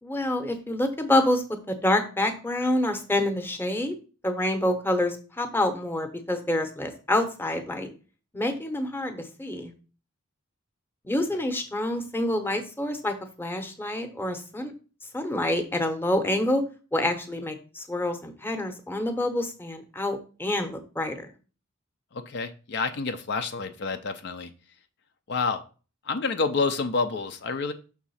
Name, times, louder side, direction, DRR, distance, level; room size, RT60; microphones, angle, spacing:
voice 1, 0.0-3.9 4.2-7.9 8.3-9.7 11.0-14.7 15.1-16.6 16.9-21.3, left 1 dB, 10° left, 7 dB, 0.8 m, -27 dB
voice 2, 22.1-24.5 25.3-25.6 26.0-27.7, left 4 dB, 55° left, 7 dB, 0.5 m, -28 dB
6.1 x 3.7 x 5.6 m, 0.36 s
head